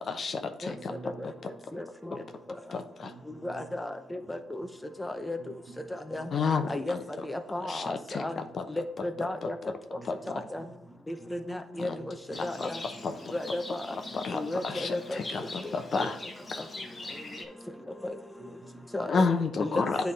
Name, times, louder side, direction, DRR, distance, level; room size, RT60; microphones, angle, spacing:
voice 1, 0.0-0.9 1.2-1.3 2.7-3.1 6.3-7.0 7.6-8.6 9.4-9.7 10.0-10.2 11.8-12.0 12.3-12.7 13.0-13.3 14.1-16.2 19.1-20.1, left 4 dB, 50° left, 7 dB, 0.7 m, -31 dB
voice 2, 0.8-1.2 2.4-2.5 3.0-3.7 5.4-6.3 7.0-7.1 8.3-8.5 10.0-11.3 12.0-12.8 14.7-14.8 15.0-15.4 16.8-17.5 18.4-18.9, right 3 dB, 35° right, 7 dB, 0.8 m, -50 dB
voice 3, 1.7-2.2 3.4-4.7 5.0-5.4 6.1-6.3 6.7-7.0 7.2-8.4 9.0-9.6 10.3-10.6 11.1-12.1 12.4-12.8 13.3-14.0 14.3-15.2 18.0-18.1 18.9-19.3 19.6-20.1, left 1 dB, 10° left, 8 dB, 0.7 m, -34 dB
Livestock farm animals working animals, 12.3-17.4, left 2 dB, 30° left, 1.0 m, -42 dB
9.0 x 3.5 x 4.1 m, 0.76 s
cardioid pair, 90°, 0 cm